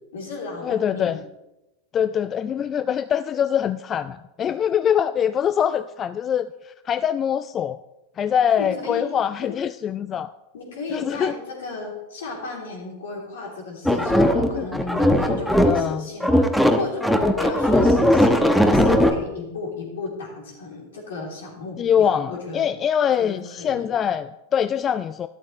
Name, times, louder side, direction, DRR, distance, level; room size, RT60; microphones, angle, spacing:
voice 1, 0.1-1.1 8.6-9.1 9.4-9.5 10.5-22.7 23.2-23.9, left 3 dB, 70° left, -1 dB, 3.4 m, -34 dB
voice 2, 0.6-1.2 1.9-7.8 8.2-10.3 10.9-11.3 14.2-14.7 15.6-16.1 21.8-25.3, left 8 dB, 30° left, 13 dB, 0.3 m, -23 dB
sound 1, 13.9-15.9 16.2-19.1, left 1 dB, 5° left, 1.1 m, -18 dB
12.5 x 11.5 x 3.3 m, 0.97 s
figure-of-eight pair, 90°, 0 cm